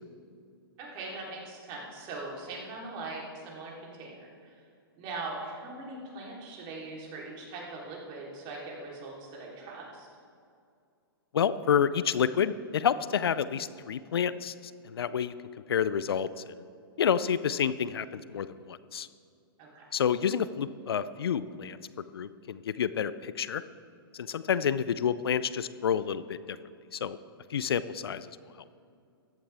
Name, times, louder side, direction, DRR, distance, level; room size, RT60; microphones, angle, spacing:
voice 1, 0.8-4.6 5.0-10.1 19.6-19.8, right 3 dB, 35° right, -3 dB, 3.5 m, -41 dB
voice 2, 11.3-14.5 14.8-15.3 15.7-16.5 17.0-19.1 19.9-21.8 22.1-23.6 24.1-26.6 26.9-27.2 27.5-28.3, left 8 dB, 75° left, 15 dB, 0.5 m, -29 dB
15.0 x 12.0 x 3.5 m, 2.3 s
hypercardioid pair, 125°, 13 cm